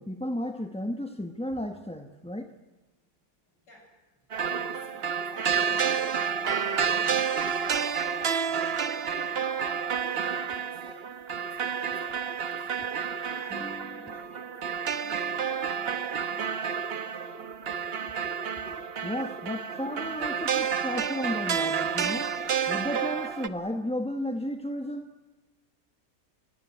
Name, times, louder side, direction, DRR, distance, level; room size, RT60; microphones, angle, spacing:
voice 1, 0.0-2.5 13.6-14.1 19.0-22.3 22.7-25.1, left 1 dB, 5° left, 6 dB, 0.8 m, -33 dB
voice 2, 3.5-3.9 4.7-9.9 10.2-17.9, left 1 dB, 80° left, 0 dB, 7.9 m, -54 dB
sound 1, 4.3-23.5, right 7 dB, 45° right, 0.9 m, -30 dB
28.0 x 16.0 x 9.5 m, 1.2 s
omnidirectional pair, 1.9 m